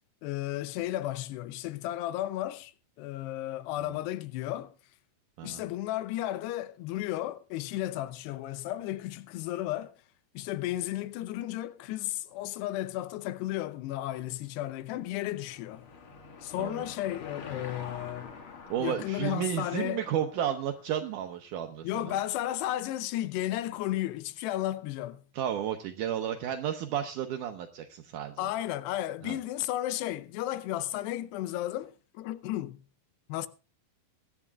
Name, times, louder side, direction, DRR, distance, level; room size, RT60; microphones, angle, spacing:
voice 1, 0.2-2.7 3.0-4.7 5.4-9.9 10.3-15.8 16.4-18.3 18.8-20.0 21.8-25.2 28.4-32.8 33.3-33.5, left 14 dB, 85° left, 2.8 m, -33 dB
Car passing by / Engine, 14.3-21.2, left 5 dB, 50° left, 1.7 m, -47 dB
voice 2, 18.7-22.2 25.4-28.5 29.2-29.4, right 10 dB, 80° right, 1.8 m, -32 dB
24.0 x 11.0 x 2.4 m
omnidirectional pair, 4.8 m